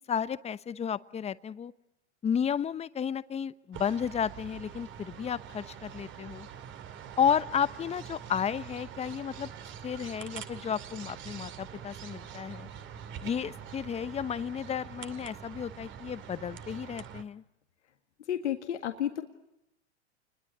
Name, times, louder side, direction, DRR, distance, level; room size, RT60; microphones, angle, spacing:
voice 1, 0.0-1.7 2.2-6.5 7.2-9.5 9.8-12.7 13.2-17.4, left 8 dB, 20° left, 15 dB, 0.9 m, -32 dB
sound 1, 3.7-17.2, right 8 dB, 35° right, 2.4 m, -45 dB
voice 2, 18.3-19.2, left 10 dB, 80° left, 5 dB, 1.9 m, -31 dB
29.5 x 21.5 x 8.8 m, 0.88 s
hypercardioid pair, 105°, 34 cm